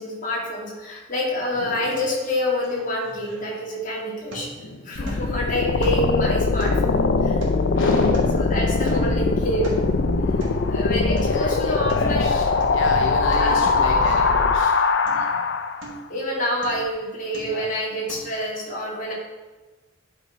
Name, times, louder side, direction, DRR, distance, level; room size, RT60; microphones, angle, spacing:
voice 1, 0.0-4.5 4.8-7.4 8.4-9.9 10.7-12.6 13.3-13.9 15.1-15.3 16.1-19.1, left 1 dB, 40° left, -4 dB, 2.2 m, -27 dB
sound 1, 2.0-2.1 2.4-3.9 4.3-4.7 5.1-5.4 5.8-6.2 6.6-8.5 8.9-9.2 9.5-9.9 10.4-10.7 11.2-11.4 11.7-12.2 12.5-12.9 13.3-13.6 14.0-14.7 15.1-15.4 15.8-16.2 16.6-16.9 17.3-17.7 18.1-18.2, right 1 dB, 85° right, 2.0 m, -39 dB
voice 2, 4.5-5.0 7.7-8.2 11.2-12.4 12.7-14.7 15.0-15.4 17.4-17.6, left 2 dB, 85° left, 0 dB, 0.9 m, -30 dB
sound 2, 4.9-15.9, left 4 dB, 65° left, 0.5 m, -21 dB
10.0 x 4.5 x 4.4 m, 1.2 s
head